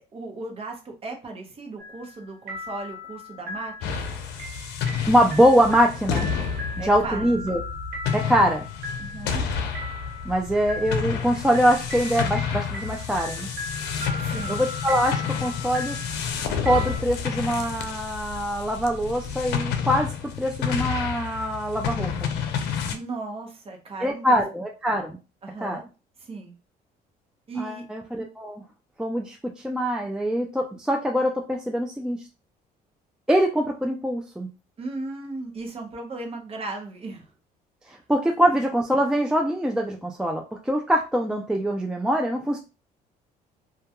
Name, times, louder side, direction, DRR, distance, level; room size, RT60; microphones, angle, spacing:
voice 1, 0.0-4.1 6.8-7.3 9.0-9.4 14.2-14.6 22.9-24.4 25.4-25.8 26.2-26.5 27.5-27.8 34.8-37.3, right 3 dB, 35° right, 2 dB, 0.8 m, -36 dB
sound 1, 1.8-2.2 2.5-17.0, left 1 dB, 90° right, 1.1 m, -38 dB
sound 2, 3.8-22.9, left 7 dB, 80° left, 0.5 m, -30 dB
voice 2, 5.1-6.3 6.8-7.6 8.1-8.6 10.3-13.5 14.5-16.0 16.6-22.3 24.0-25.2 25.6-25.8 27.6-28.6 29.0-32.2 33.3-34.5 38.1-42.6, equal, 5° right, 1 dB, 0.3 m, -23 dB
2.2 x 2.2 x 2.8 m, 0.31 s
cardioid pair, 110°, 17 cm